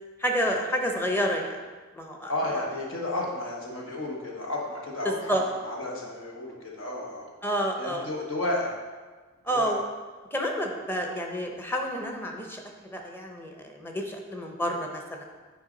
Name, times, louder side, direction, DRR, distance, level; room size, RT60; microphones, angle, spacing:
voice 1, 0.2-1.6 1.9-2.3 5.0-5.4 7.4-8.1 9.4-9.8 10.3-12.6 12.9-15.2, equal, 10° left, 2 dB, 0.8 m, -29 dB
voice 2, 2.2-7.3 7.8-8.7 9.5-9.8, left 2 dB, 65° left, -2 dB, 1.3 m, -32 dB
9.3 x 4.8 x 4.0 m, 1.4 s
head